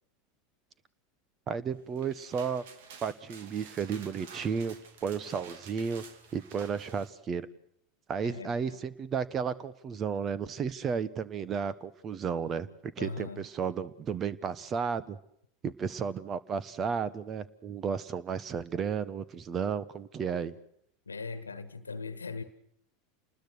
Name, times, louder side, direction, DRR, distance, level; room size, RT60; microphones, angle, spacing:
voice 1, 1.5-2.6 3.0-4.8 5.0-6.0 6.3-7.5 8.1-15.2 15.6-20.5, right 6 dB, 30° right, 1.3 m, -33 dB
sound 1, 1.8-7.1, right 6 dB, 60° right, 2.5 m, -51 dB
voice 2, 8.2-8.8 13.0-13.5 21.1-22.4, left 4 dB, 80° left, 1.5 m, -40 dB
28.5 x 20.5 x 6.4 m
figure-of-eight pair, 85°, 0 cm